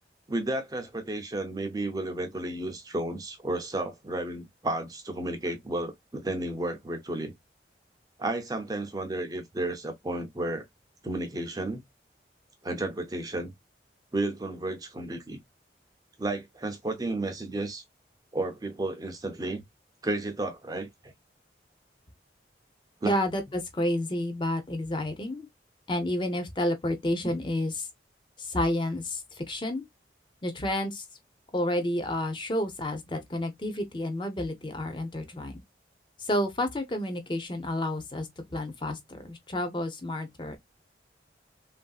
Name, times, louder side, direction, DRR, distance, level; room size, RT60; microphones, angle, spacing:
voice 1, 0.3-7.3 8.2-10.6 11.0-11.8 12.6-13.5 14.1-15.4 16.2-17.8 18.3-19.6 20.0-21.1 23.0-23.1 27.2-27.3, right 2 dB, 20° right, 0.5 m, -32 dB
voice 2, 23.0-25.5 25.9-27.9 28.4-29.8 30.4-31.1 31.5-35.6 36.2-40.6, left 1 dB, 25° left, 0.6 m, -30 dB
3.1 x 2.6 x 2.3 m
head